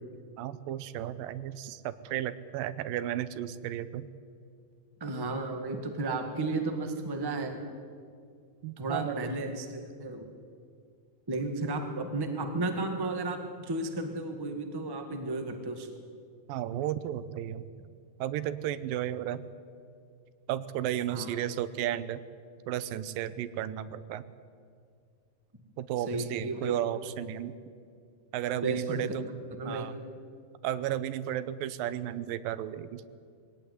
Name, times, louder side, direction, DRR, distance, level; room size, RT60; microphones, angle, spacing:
voice 1, 0.4-4.1 8.6-9.2 16.5-17.7 18.2-19.5 20.5-22.2 22.7-24.3 25.8-27.5 28.3-29.3 29.6-30.0 30.6-33.0, right 11 dB, 85° right, 14 dB, 2.5 m, -33 dB
voice 2, 5.0-7.6 8.8-10.3 11.3-15.9 21.1-21.4 26.0-26.7 28.6-29.2 29.6-29.9, right 2 dB, 15° right, 5 dB, 0.7 m, -33 dB
21.0 x 17.0 x 9.6 m, 2.2 s
omnidirectional pair, 4.0 m